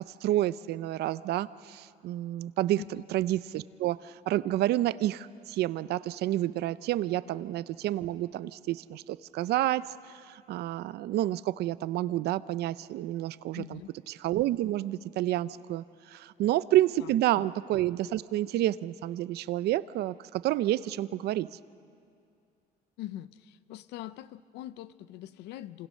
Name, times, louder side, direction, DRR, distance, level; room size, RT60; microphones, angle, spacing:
voice 1, 0.2-13.8 14.1-21.6, right 14 dB, 75° right, 17 dB, 0.6 m, -29 dB
voice 2, 13.5-13.9 16.4-16.5 17.0-17.5 23.0-25.9, left 13 dB, 85° left, 15 dB, 0.7 m, -43 dB
27.0 x 26.5 x 6.4 m, 2.4 s
cardioid pair, 110°, 17 cm